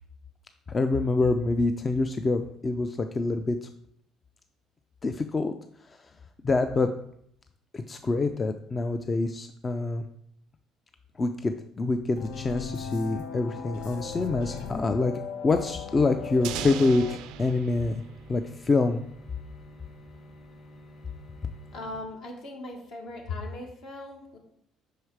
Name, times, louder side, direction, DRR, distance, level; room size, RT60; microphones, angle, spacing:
voice 1, 0.7-3.7 5.0-5.5 6.4-6.9 7.7-10.0 11.2-15.1 15.4-18.0 18.3-19.0, left 3 dB, 30° left, 7 dB, 0.4 m, -26 dB
sound 1, 12.2-17.2, left 6 dB, 80° left, 0.7 m, -38 dB
sound 2, 15.8-22.0, left 1 dB, 45° left, 2.4 m, -50 dB
sound 3, 16.4-19.2, right 11 dB, 80° right, 0.3 m, -39 dB
voice 2, 21.7-24.4, left 2 dB, 65° left, 1 dB, 1.6 m, -38 dB
5.6 x 4.7 x 4.7 m, 0.71 s
cardioid pair, 100°, 0 cm